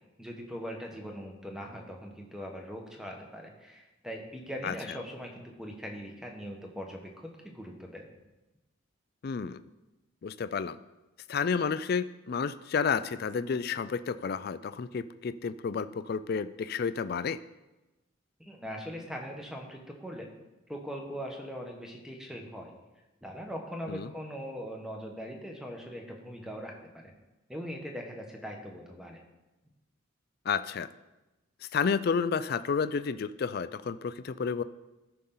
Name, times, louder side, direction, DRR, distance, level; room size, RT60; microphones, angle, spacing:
voice 1, 0.2-8.2 18.4-20.3 20.7-22.7 23.2-27.1 27.5-29.2, equal, 5° right, 1 dB, 1.1 m, -41 dB
voice 2, 9.2-9.6 10.2-10.8 11.3-17.4 23.9-24.1 30.5-30.9 31.7-34.6, left 6 dB, 45° left, 13 dB, 0.3 m, -31 dB
13.0 x 5.6 x 3.9 m, 1.0 s
head